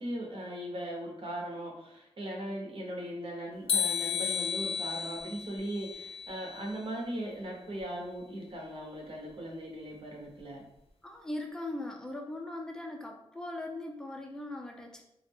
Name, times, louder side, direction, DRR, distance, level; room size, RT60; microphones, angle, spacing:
voice 1, 0.0-10.6, right 1 dB, 60° right, -1 dB, 0.7 m, -39 dB
sound 1, 3.7-6.8, left 6 dB, 70° left, 0.4 m, -33 dB
voice 2, 11.0-15.0, left 1 dB, 5° left, 1 dB, 0.4 m, -39 dB
2.4 x 2.0 x 3.3 m, 0.80 s
wide cardioid pair, 130°, 11 cm